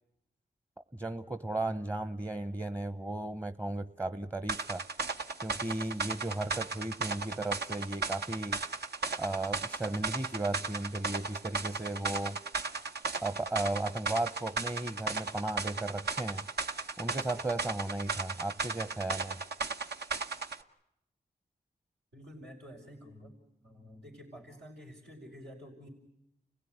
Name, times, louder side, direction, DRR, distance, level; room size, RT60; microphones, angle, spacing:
voice 1, 0.9-4.8 5.4-8.6 9.2-12.4 13.2-16.5 17.0-19.4, right 2 dB, 15° right, 12 dB, 0.9 m, -35 dB
sound 1, 4.5-20.6, right 4 dB, 75° right, 1.1 m, -36 dB
voice 2, 22.1-23.3 23.6-25.9, equal, 90° right, -1 dB, 5.0 m, -50 dB
29.5 x 16.5 x 9.5 m, 0.83 s
cardioid pair, 45°, 17 cm